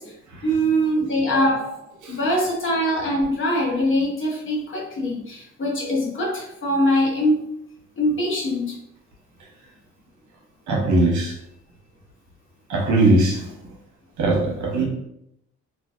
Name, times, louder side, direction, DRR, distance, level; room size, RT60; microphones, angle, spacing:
voice 1, 0.4-7.5 8.0-8.8, equal, 40° left, -3 dB, 1.0 m, -23 dB
voice 2, 10.7-11.3 12.7-13.5 14.2-14.9, right 2 dB, 75° right, -1 dB, 0.9 m, -20 dB
2.6 x 2.3 x 2.3 m, 0.79 s
cardioid pair, 90°, 30 cm